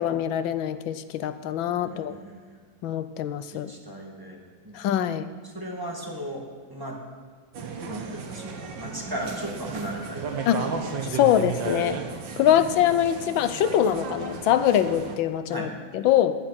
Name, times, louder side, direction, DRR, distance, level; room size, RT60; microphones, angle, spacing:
voice 1, 0.0-2.1 2.8-3.7 4.7-5.3 10.5-10.7 11.1-12.0 12.4-16.4, left 10 dB, 90° left, 12 dB, 1.5 m, -23 dB
voice 2, 1.8-2.6 3.4-4.4 4.6-4.8 5.4-6.4 6.7-7.0 7.8-11.2 15.5-15.7, equal, 10° right, -1 dB, 2.1 m, -36 dB
sound 1, 7.5-15.2, right 5 dB, 75° right, 2.0 m, -34 dB
19.5 x 10.0 x 5.9 m, 1.5 s
omnidirectional pair, 2.1 m